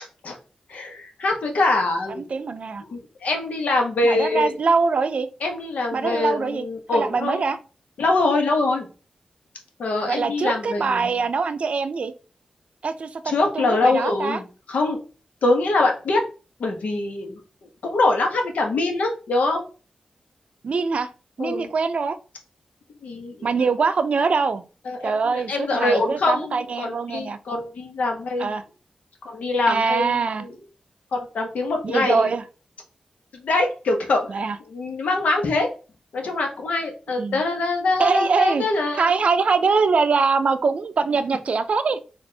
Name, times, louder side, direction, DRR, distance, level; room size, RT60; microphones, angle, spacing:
voice 1, 0.7-2.3 2.9-4.5 5.4-7.4 8.0-8.9 9.8-11.1 13.3-15.0 15.4-16.2 16.6-17.4 17.8-19.6 21.4-21.7 23.0-23.5 24.9-28.6 29.2-30.5 31.1-32.2 33.3-34.3 34.7-35.7 36.1-39.1, left 2 dB, 85° left, 1.0 m, -24 dB
voice 2, 2.2-2.8 4.0-5.3 5.9-6.6 6.9-7.6 10.0-12.1 12.8-14.4 20.6-21.1 21.4-22.2 23.4-24.6 25.0-27.4 28.4-28.6 29.7-30.5 31.8-32.4 34.3-34.6 37.2-37.4 38.0-38.6 38.9-42.0, right 4 dB, 60° right, 0.4 m, -23 dB
4.2 x 2.5 x 3.2 m
cardioid pair, 75°, 2 cm